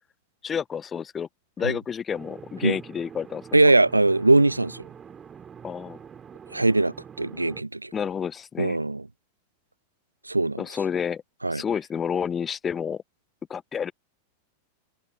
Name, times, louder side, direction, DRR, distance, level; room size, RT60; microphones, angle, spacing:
voice 1, 0.4-1.3 1.6-3.7 5.6-6.0 7.9-8.8 10.6-11.2 11.5-13.0 13.5-13.9, left 7 dB, 20° left, 0.8 m, -30 dB
sound 1, 2.1-7.6, right 7 dB, 20° right, 2.7 m, -45 dB
voice 2, 3.5-4.8 6.5-7.9 8.6-9.1 10.3-10.6 11.4-11.6, right 2 dB, 85° right, 0.8 m, -21 dB
open air
figure-of-eight pair, 90°, 0 cm